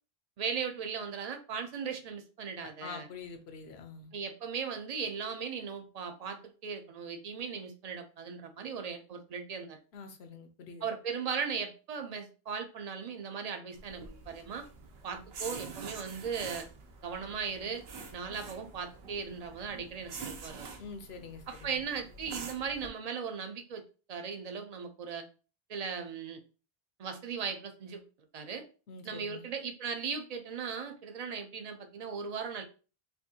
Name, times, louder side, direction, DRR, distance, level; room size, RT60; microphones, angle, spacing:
voice 1, 0.4-3.1 4.1-9.8 10.8-14.7 15.0-16.7 17.0-17.8 18.1-20.7 21.5-23.8 24.1-25.2 25.7-26.4 27.0-28.0 28.3-28.7 29.0-32.6, right 6 dB, 45° right, 6 dB, 0.6 m, -38 dB
voice 2, 2.6-4.1 9.9-10.9 20.8-21.8 28.9-29.5, left 5 dB, 85° left, 7 dB, 1.0 m, -46 dB
sound 1, 13.7-22.9, right 4 dB, 80° right, 0.9 m, -46 dB
4.4 x 2.6 x 2.8 m, 0.36 s
omnidirectional pair, 1.0 m